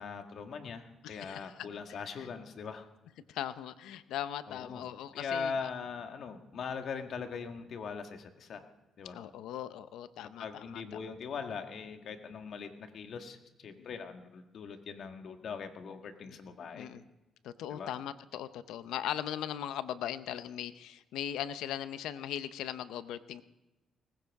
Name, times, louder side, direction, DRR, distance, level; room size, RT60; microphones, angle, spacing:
voice 1, 0.0-2.9 4.5-4.8 5.1-8.6 9.0-9.2 10.4-13.4 13.6-16.9 17.7-17.9, left 5 dB, 60° left, 6 dB, 1.6 m, -41 dB
voice 2, 1.0-1.7 2.2-2.3 3.3-5.5 9.1-11.0 13.8-13.9 16.2-16.3 16.7-17.0 17.4-23.4, left 10 dB, 85° left, 13 dB, 0.7 m, -39 dB
19.0 x 16.0 x 3.6 m, 1.0 s
cardioid pair, 90°, 0 cm